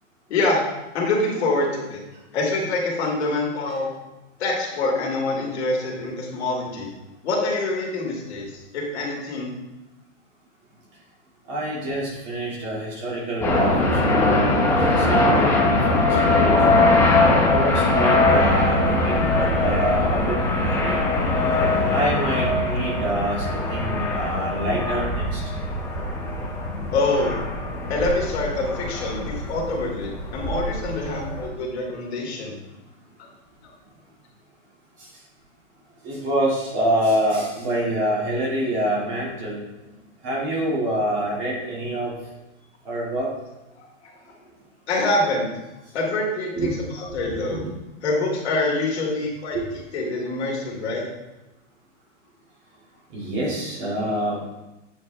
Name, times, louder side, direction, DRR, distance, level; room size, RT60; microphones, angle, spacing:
voice 1, 0.3-0.6 0.9-2.0 2.3-3.9 4.4-6.9 7.2-9.5 26.9-27.3 27.9-32.5 43.7-44.2 44.9-45.5 45.9-47.6 48.0-49.6 49.9-51.0, left 2 dB, 60° left, -2 dB, 2.4 m, -25 dB
voice 2, 11.5-16.8 17.5-20.4 20.7-21.0 21.9-25.4 36.0-39.6 40.2-42.1 42.9-43.3 46.6-46.7 47.1-47.6 53.1-54.6, right 1 dB, 30° right, -5 dB, 2.4 m, -26 dB
sound 1, 13.4-31.5, left 2 dB, 5° left, 0.8 m, -21 dB
8.6 x 4.9 x 3.4 m, 1.0 s
hypercardioid pair, 155°, 37 cm